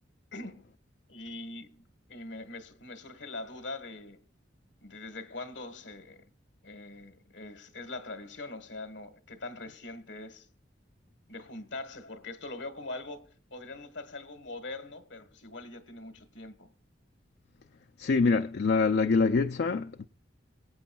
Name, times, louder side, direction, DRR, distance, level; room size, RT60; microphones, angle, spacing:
voice 1, 0.3-0.7 1.1-4.2 4.8-6.3 6.6-10.5 11.3-16.7, left 2 dB, 80° left, 1.4 m, -42 dB
voice 2, 18.0-20.1, left 4 dB, 60° left, 0.4 m, -25 dB
23.5 x 8.4 x 2.3 m
head